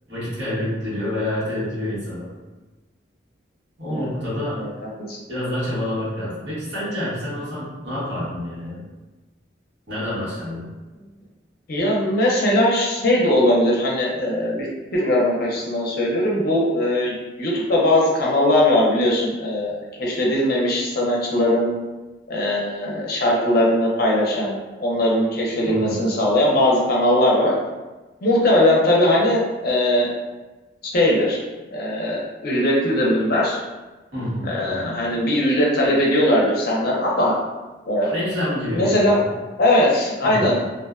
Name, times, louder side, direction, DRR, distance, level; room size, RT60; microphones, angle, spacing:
voice 1, 0.1-2.3 3.8-4.6 5.3-8.8 9.9-10.7 25.6-26.0 34.1-35.1 38.0-39.2 40.2-40.5, left 1 dB, 65° right, -9 dB, 1.2 m, -28 dB
voice 2, 11.7-14.7 14.9-21.7 22.3-27.5 28.2-30.1 30.9-31.4 31.7-33.6 34.4-37.3 37.9-38.1 38.7-39.2 39.6-40.6, left 1 dB, 55° left, -3 dB, 0.5 m, -20 dB
2.5 x 2.1 x 2.3 m, 1.2 s
head